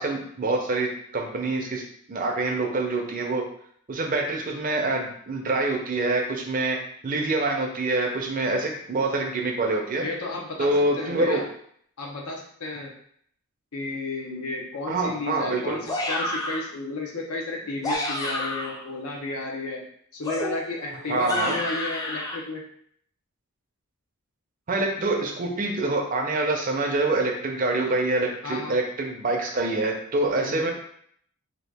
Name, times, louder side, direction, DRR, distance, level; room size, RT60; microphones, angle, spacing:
voice 1, 0.0-1.8 2.1-3.4 3.9-6.8 7.0-10.0 10.6-11.5 14.9-15.8 21.1-21.6 24.7-30.7, right 2 dB, 40° right, 2 dB, 0.5 m, -26 dB
voice 2, 9.9-11.4 12.0-12.9 13.7-19.9 20.1-22.6 28.4-28.8 30.3-30.7, left 3 dB, 85° left, 0 dB, 0.7 m, -32 dB
sound 1, 15.9-16.7 17.6-18.8 20.2-22.4, left 1 dB, 15° left, 0.4 m, -30 dB
2.8 x 2.3 x 3.4 m, 0.64 s
head